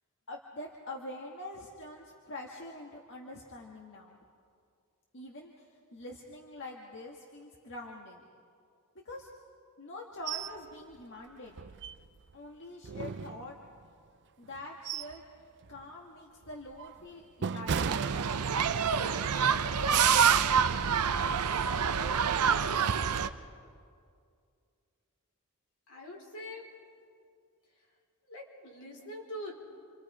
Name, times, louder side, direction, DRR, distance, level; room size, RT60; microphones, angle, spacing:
voice 1, 0.3-4.2 5.1-8.2 9.1-9.3 9.8-11.6 12.3-13.6 14.4-15.2 15.7-18.1 19.0-20.7, left 1 dB, 55° left, -1 dB, 1.8 m, -45 dB
sound 1, 10.3-10.6 10.9-11.0 11.5-12.3 12.8-13.9 14.4-15.2 15.6-15.9 16.4-18.9 19.3-19.5, right 6 dB, 55° right, 0.5 m, -37 dB
sound 2, 17.7-23.3, right 7 dB, 85° right, 0.7 m, -27 dB
voice 2, 25.9-26.8 28.2-29.7, left 1 dB, 75° left, -2 dB, 4.7 m, -44 dB
29.5 x 25.5 x 5.0 m, 2.3 s
head